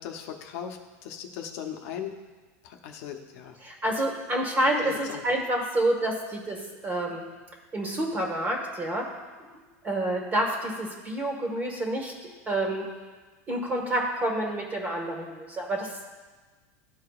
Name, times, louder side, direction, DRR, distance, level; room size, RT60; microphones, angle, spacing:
voice 1, 0.0-2.1 2.6-3.6 4.8-5.2, left 9 dB, 65° left, 3 dB, 0.8 m, -38 dB
voice 2, 3.6-7.2 7.7-9.1 9.5-12.1 12.5-12.9 13.5-16.0, right 1 dB, 20° right, 1 dB, 1.6 m, -28 dB
14.0 x 4.7 x 2.4 m, 1.3 s
supercardioid pair, 140°, 8 cm